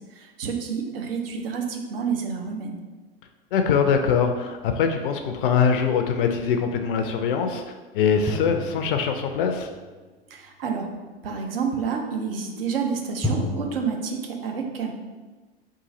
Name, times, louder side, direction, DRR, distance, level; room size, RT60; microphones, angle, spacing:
voice 1, 0.1-2.8 10.3-10.9 11.2-14.9, right 6 dB, 70° right, 3 dB, 0.7 m, -29 dB
voice 2, 3.5-7.6 7.9-9.7, left 6 dB, 60° left, 5 dB, 0.4 m, -22 dB
sound 1, 8.3-9.9 13.2-13.8, left 1 dB, ahead, 0.4 m, -30 dB
3.7 x 2.6 x 3.9 m, 1.3 s
figure-of-eight pair, 85°, 30 cm